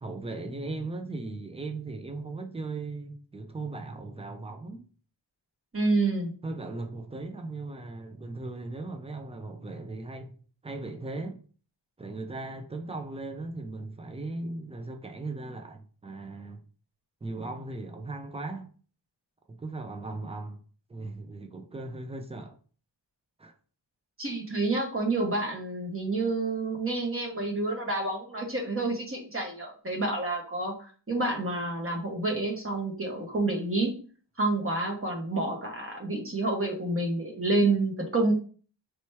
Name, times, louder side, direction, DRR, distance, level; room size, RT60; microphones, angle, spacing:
voice 1, 0.0-4.9 6.4-10.4 10.6-11.4 12.0-16.6 17.2-18.7 19.5-20.6 20.9-22.6 23.4-23.5, right 2 dB, 15° right, 0.6 m, -38 dB
voice 2, 5.7-6.3 24.2-30.7 31.1-33.9 34.4-38.3, right 2 dB, 30° right, 1.2 m, -28 dB
3.3 x 2.9 x 4.5 m
wide cardioid pair, 115°, 46 cm